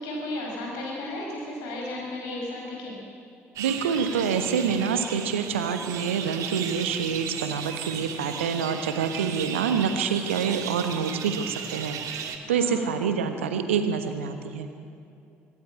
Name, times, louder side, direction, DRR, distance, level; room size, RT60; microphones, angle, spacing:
voice 1, 0.0-3.0 12.4-13.0, left 1 dB, 65° left, -1 dB, 5.8 m, -34 dB
sound 1, 3.6-12.4, right 7 dB, 60° right, 1.6 m, -36 dB
voice 2, 3.6-14.7, right 6 dB, 75° right, 8 dB, 1.2 m, -27 dB
25.0 x 13.0 x 8.8 m, 2.6 s
figure-of-eight pair, 45°, 7 cm